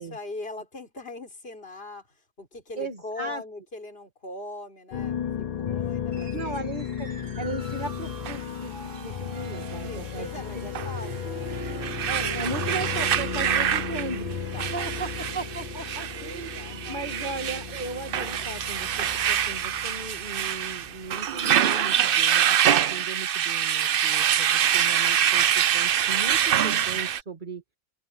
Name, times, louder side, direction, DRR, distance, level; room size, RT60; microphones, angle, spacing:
voice 1, 0.0-5.3 5.6-6.5 7.1-7.4 9.5-11.9 14.5-15.2 16.1-17.4, left 2 dB, 50° left, 4.9 m, -41 dB
voice 2, 2.8-3.4 6.3-10.7 12.1-14.4 14.7-27.6, right 3 dB, 40° right, 2.5 m, -37 dB
sound 1, 4.9-21.5, left 9 dB, 70° left, 0.3 m, -35 dB
sound 2, 6.1-18.4, right 3 dB, 80° right, 4.8 m, -41 dB
sound 3, 8.2-8.4 10.7-10.9 11.5-27.2, right 9 dB, 55° right, 0.7 m, -25 dB
omnidirectional pair, 1.3 m